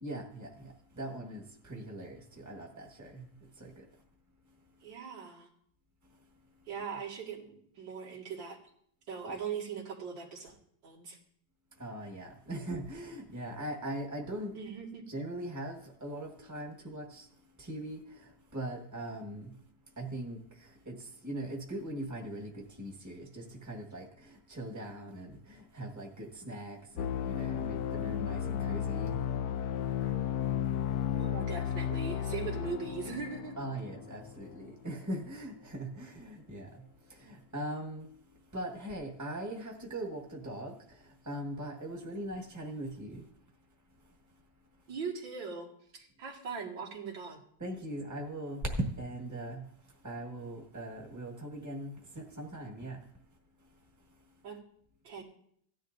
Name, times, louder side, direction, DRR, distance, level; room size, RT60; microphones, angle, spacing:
voice 1, 0.0-0.7 0.9-2.2 2.4-3.2 3.6-3.7 11.8-14.5 15.1-17.2 17.6-18.0 18.5-19.5 20.0-20.4 20.9-21.0 21.2-24.1 24.5-29.1 33.6-36.7 37.2-38.0 38.5-40.7 41.3-43.2 47.6-48.6 49.0-49.6 50.0-53.0, right 1 dB, 10° right, 1.3 m, -40 dB
voice 2, 4.8-5.5 6.7-8.6 9.1-10.6 10.8-11.2 14.5-15.0 31.1-33.6 44.9-45.7 45.9-47.4 54.4-54.6 55.0-55.2, right 6 dB, 80° right, 2.6 m, -40 dB
sound 1, 27.0-34.5, left 9 dB, 70° left, 1.0 m, -33 dB
16.5 x 10.5 x 2.6 m
omnidirectional pair, 2.0 m